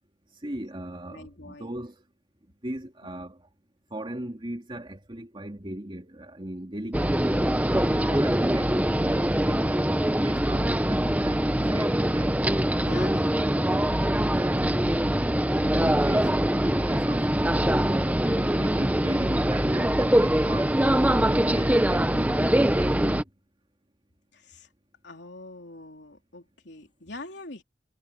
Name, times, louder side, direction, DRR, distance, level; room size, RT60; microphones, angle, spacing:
voice 1, 0.4-2.0 2.6-3.4 3.9-7.2 7.8-9.9 10.2-11.4 11.7-12.3 13.1-13.3 14.3-14.9 15.8-17.3 17.8-20.8 21.2-23.3, right 1 dB, 30° right, 2.6 m, -38 dB
voice 2, 1.1-1.7 7.7-8.5 12.8-13.9 14.3-14.5 15.6-16.0 24.3-24.7 25.0-27.6, left 2 dB, 65° left, 3.8 m, -45 dB
sound 1, 6.9-23.2, right 1 dB, 10° right, 1.0 m, -23 dB
head